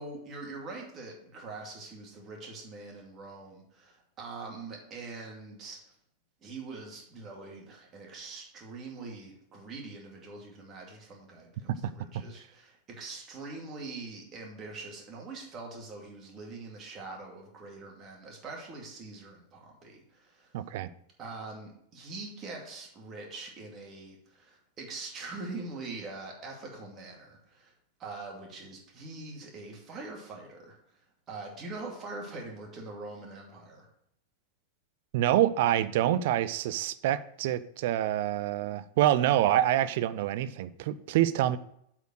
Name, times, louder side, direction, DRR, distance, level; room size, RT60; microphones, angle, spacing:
voice 1, 0.0-5.8 6.4-20.5 21.2-27.7 28.0-30.8 31.3-33.9, right 3 dB, 30° right, 0 dB, 2.4 m, -43 dB
voice 2, 20.5-20.9 35.1-41.6, right 12 dB, 50° right, 15 dB, 0.4 m, -26 dB
7.9 x 4.5 x 6.4 m, 0.71 s
figure-of-eight pair, 90°, 0 cm